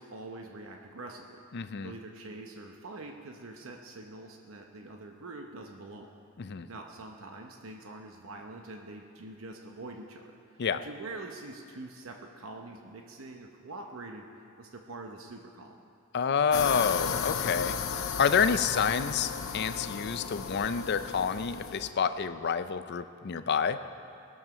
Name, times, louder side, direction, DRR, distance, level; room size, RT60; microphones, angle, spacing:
voice 1, 0.0-1.4 1.8-6.1 6.7-14.3 14.6-15.8, right 2 dB, 75° right, 2 dB, 0.9 m, -45 dB
voice 2, 1.5-1.9 6.4-6.7 10.6-10.8 16.1-17.8 18.2-23.8, left 6 dB, 55° left, 11 dB, 0.5 m, -28 dB
sound 1, 16.5-21.9, left 6 dB, 80° left, 0.8 m, -34 dB
19.5 x 7.2 x 6.0 m, 2.5 s
head